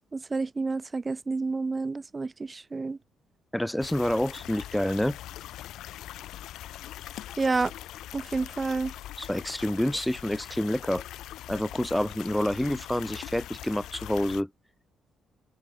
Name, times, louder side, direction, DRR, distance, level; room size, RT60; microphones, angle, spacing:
voice 1, 0.1-3.0 7.4-7.7 8.1-8.9, right 3 dB, 25° right, 1.1 m, -29 dB
voice 2, 3.5-5.2 9.2-11.0 11.5-14.5, left 1 dB, 5° left, 2.6 m, -28 dB
sound 1, 3.8-14.4, left 13 dB, 85° left, 4.3 m, -42 dB
cardioid pair, 90°, 0 cm